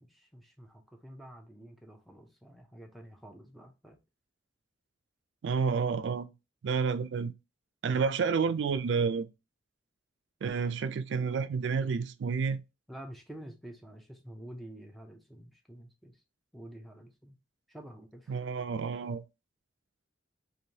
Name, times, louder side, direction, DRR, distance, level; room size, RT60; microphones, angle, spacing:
voice 1, 0.0-4.0 12.9-16.2 16.5-17.4 17.7-18.4, right 1 dB, ahead, 0.6 m, -49 dB
voice 2, 5.4-6.3 6.6-7.3 7.8-9.3 10.4-12.6 18.3-19.2, right 5 dB, 65° right, 0.3 m, -30 dB
3.2 x 2.6 x 2.7 m
head